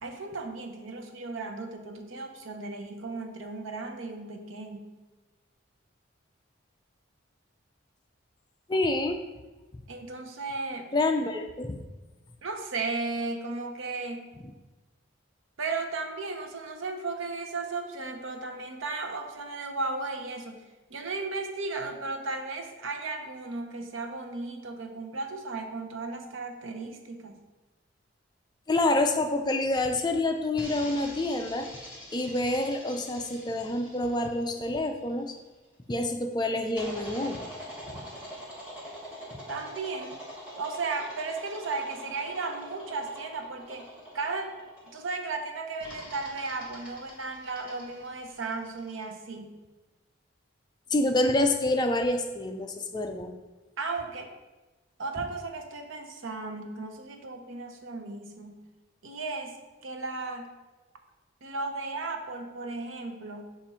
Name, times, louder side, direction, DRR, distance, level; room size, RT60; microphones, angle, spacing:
voice 1, 0.0-4.8 9.9-10.9 12.4-14.2 15.6-20.6 20.9-27.4 39.5-40.2 40.6-43.9 44.1-44.5 44.9-49.6 53.8-54.3 55.0-58.6 59.0-59.6 59.8-60.5 61.4-63.6, right 3 dB, 85° right, 5 dB, 0.7 m, -35 dB
voice 2, 8.7-9.2 10.9-11.8 28.7-31.7 32.1-35.3 35.9-37.4 50.9-53.3, left 2 dB, 20° left, 5 dB, 0.4 m, -27 dB
sound 1, 30.6-35.5 36.8-45.1 45.8-49.0, equal, 5° right, 1.4 m, -44 dB
7.1 x 2.5 x 5.6 m, 1.2 s
head